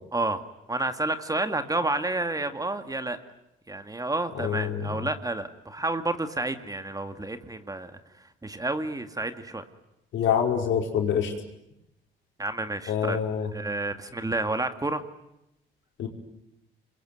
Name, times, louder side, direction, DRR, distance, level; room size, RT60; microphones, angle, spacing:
voice 1, 0.1-0.4 0.7-3.2 3.7-8.0 8.4-9.6 12.4-13.2 13.5-15.0, right 2 dB, 20° right, 8 dB, 2.2 m, -30 dB
voice 2, 4.4-4.8 10.1-11.3 12.9-13.5 16.0-16.1, left 8 dB, 75° left, 2 dB, 5.2 m, -25 dB
27.5 x 22.5 x 9.4 m, 0.87 s
cardioid pair, 90°, 20 cm